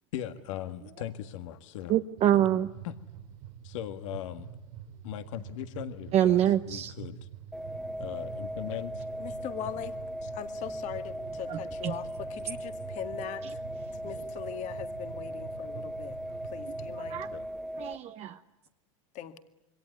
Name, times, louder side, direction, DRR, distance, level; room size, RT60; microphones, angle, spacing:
voice 1, 0.1-2.0 2.3-2.4 2.8-3.0 3.6-4.5 5.0-7.3 8.0-9.0 17.3-17.5, left 11 dB, 70° left, 9 dB, 1.7 m, -39 dB
voice 2, 1.9-2.7 6.1-6.9 11.5-11.9 17.1-17.3 17.8-18.4, right 11 dB, 40° right, 7 dB, 1.1 m, -25 dB
sound 1, 2.2-17.3, right 9 dB, 70° right, 4.9 m, -47 dB
sound 2, 7.5-18.0, equal, ahead, 1.3 m, -38 dB
voice 3, 9.2-9.9 10.2-13.6 14.0-16.2 16.5-17.3 19.1-19.4, left 11 dB, 45° left, 9 dB, 2.0 m, -40 dB
27.0 x 22.5 x 9.5 m, 0.97 s
supercardioid pair, 115°, 17 cm